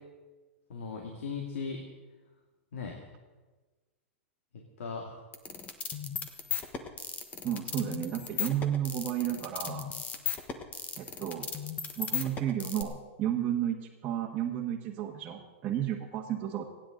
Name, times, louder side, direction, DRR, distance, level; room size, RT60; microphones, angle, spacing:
voice 1, 0.7-1.9 2.7-3.1 4.5-5.2, left 5 dB, 80° left, 1 dB, 2.4 m, -38 dB
sound 1, 5.3-12.8, left 8 dB, 20° left, 1.3 m, -36 dB
voice 2, 7.4-9.9 11.0-11.5 12.0-13.8 14.0-16.6, right 10 dB, 25° right, -3 dB, 1.5 m, -32 dB
29.0 x 10.0 x 3.9 m, 1.3 s
hypercardioid pair, 145°, 7 cm